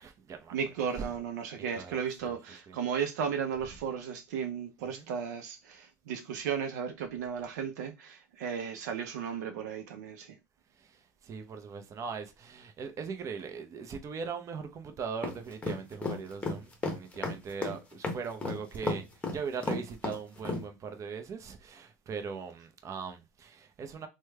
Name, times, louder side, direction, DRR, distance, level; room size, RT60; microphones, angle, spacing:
voice 1, 0.0-0.5 1.0-1.1 1.6-2.0 2.2-2.4 2.7-2.8 4.9-5.1 10.8-19.1 19.3-24.1, right 6 dB, 35° right, 0.6 m, -40 dB
voice 2, 0.5-10.4, right 7 dB, 75° right, 0.6 m, -35 dB
sound 1, 15.2-20.6, left 3 dB, 15° left, 0.9 m, -33 dB
3.1 x 2.2 x 3.3 m
hypercardioid pair, 95°, 9 cm